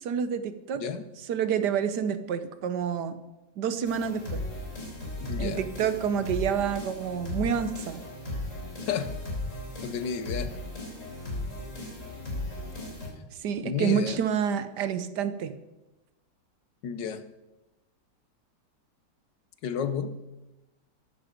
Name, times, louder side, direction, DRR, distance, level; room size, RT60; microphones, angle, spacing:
voice 1, 0.0-0.8 1.2-3.2 3.6-4.4 5.4-8.0 13.4-15.5, right 7 dB, 70° right, 11 dB, 1.5 m, -28 dB
sound 1, 3.8-13.1, left 1 dB, 45° left, 4.8 m, -36 dB
voice 2, 5.2-5.6 8.8-9.1 9.8-10.5 13.6-14.2 16.8-17.2 19.6-20.2, left 7 dB, 80° left, 11 dB, 1.6 m, -31 dB
14.5 x 11.0 x 5.2 m, 1.0 s
omnidirectional pair, 1.9 m